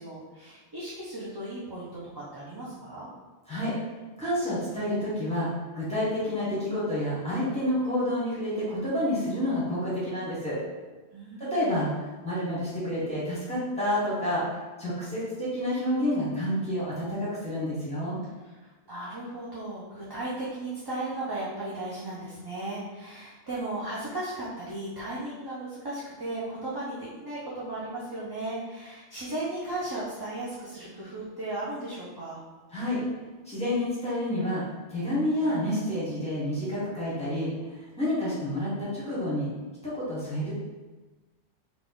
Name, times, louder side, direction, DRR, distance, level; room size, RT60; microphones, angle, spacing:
voice 1, 0.0-3.1 11.1-11.7 18.6-32.4, right 2 dB, 25° right, -8 dB, 0.6 m, -36 dB
voice 2, 4.2-5.5 5.7-10.6 11.4-11.9 12.2-18.2 32.7-33.0 33.4-34.6 34.9-39.5 39.8-40.5, left 1 dB, 5° left, -9 dB, 1.4 m, -29 dB
3.9 x 2.4 x 3.8 m, 1.2 s
omnidirectional pair, 1.2 m